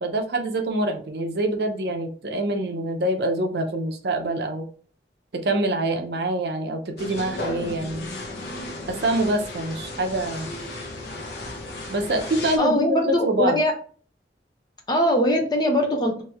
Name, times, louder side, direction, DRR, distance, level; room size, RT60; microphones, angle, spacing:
voice 1, 0.0-4.6 5.3-8.1 8.9-10.5 11.9-13.6, right 1 dB, 60° right, 5 dB, 0.6 m, -25 dB
sound 1, 7.0-12.6, left 2 dB, 65° left, 0.8 m, -34 dB
voice 2, 12.6-13.7 14.9-16.2, left 1 dB, 25° left, 2 dB, 0.7 m, -21 dB
3.1 x 3.0 x 3.4 m, 0.43 s
head